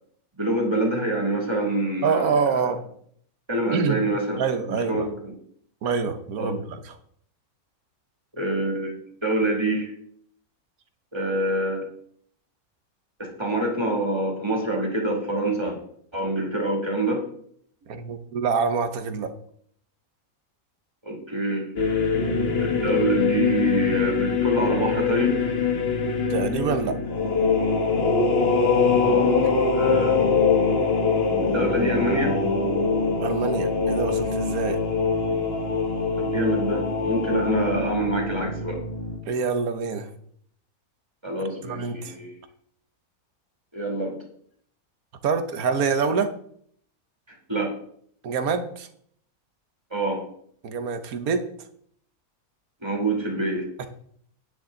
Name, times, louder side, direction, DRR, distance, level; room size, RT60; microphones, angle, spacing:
voice 1, 0.3-2.3 2.6-2.7 3.5-4.4 4.7-5.3 6.4-6.5 8.4-8.9 9.2-9.9 11.1-11.9 13.2-15.8 16.1-17.2 21.0-21.7 22.6-25.4 29.0-29.4 29.7-30.2 31.4-32.4 36.2-38.8 41.2-42.3 43.7-44.1 47.5-47.7 49.9-50.2 52.8-53.7, right 1 dB, 20° right, -1 dB, 2.7 m, -26 dB
voice 2, 2.0-2.8 3.7-4.0 4.4-5.1 5.8-6.8 17.9-19.3 26.3-27.0 33.2-34.8 39.3-40.1 41.6-42.1 45.2-46.3 48.2-48.9 50.6-51.5 53.8-53.9, right 5 dB, 80° right, 9 dB, 1.5 m, -26 dB
sound 1, 21.8-39.2, left 4 dB, 45° left, 1.5 m, -23 dB
10.0 x 9.8 x 3.9 m, 0.64 s
omnidirectional pair, 1.5 m